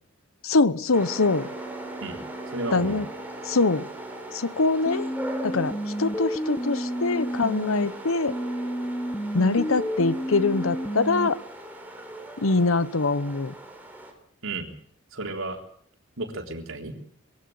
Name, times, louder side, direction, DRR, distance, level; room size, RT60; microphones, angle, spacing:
voice 1, 0.4-1.5 2.7-3.0 3.5-3.8 4.3-5.1 5.4-8.3 9.3-11.4 12.4-13.5, left 3 dB, 85° left, 16 dB, 1.0 m, -23 dB
sound 1, 0.9-14.1, right 1 dB, 10° right, 4.0 m, -39 dB
voice 2, 2.5-3.0 14.4-14.7 15.1-15.6 16.2-16.9, right 2 dB, 80° right, 4 dB, 3.7 m, -33 dB
sound 2, 4.9-7.9 8.3-11.3, equal, 15° left, 1.0 m, -30 dB
22.0 x 16.0 x 8.7 m, 0.63 s
head